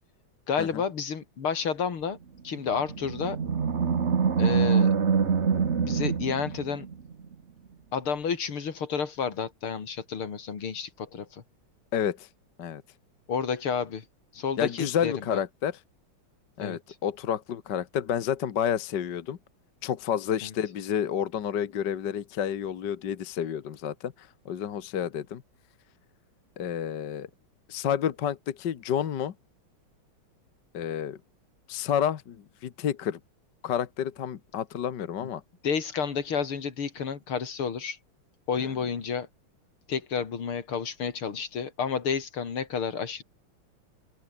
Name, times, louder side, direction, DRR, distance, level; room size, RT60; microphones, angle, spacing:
voice 1, 0.5-2.2 2.4-3.4 4.4-4.9 5.8-6.9 7.9-11.4 13.3-14.1 14.3-15.4 16.6-16.8 20.4-20.5 35.2-35.3 35.6-38.0 38.5-39.3 39.9-43.2, left 6 dB, 80° left, 3.5 m, -30 dB
Animal, 2.6-7.1, right 6 dB, 35° right, 1.4 m, -25 dB
voice 2, 11.9-12.3 12.6-12.8 14.6-15.8 16.6-19.4 19.8-25.4 26.6-27.3 27.7-29.3 30.7-31.2 31.7-33.2 33.6-35.4, left 9 dB, 55° left, 1.8 m, -30 dB
open air
omnidirectional pair, 2.3 m